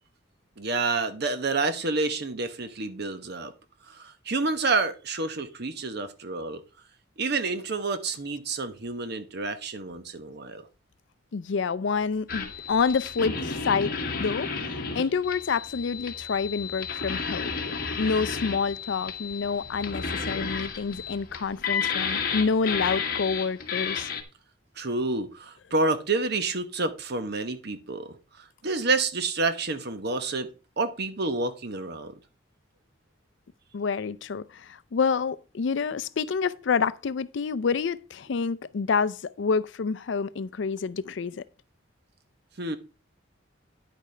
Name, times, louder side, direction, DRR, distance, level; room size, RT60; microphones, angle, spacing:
voice 1, 0.6-3.5 3.9-6.6 7.2-10.6 24.8-28.2 28.6-30.5 30.8-32.1 42.6-42.8, right 3 dB, 55° right, 1.0 m, -29 dB
voice 2, 11.3-13.9 14.2-17.5 18.0-24.1 33.7-41.4, left 5 dB, 65° left, 0.4 m, -28 dB
sound 1, 12.3-24.2, left 5 dB, 50° left, 1.4 m, -32 dB
10.0 x 8.5 x 3.3 m
head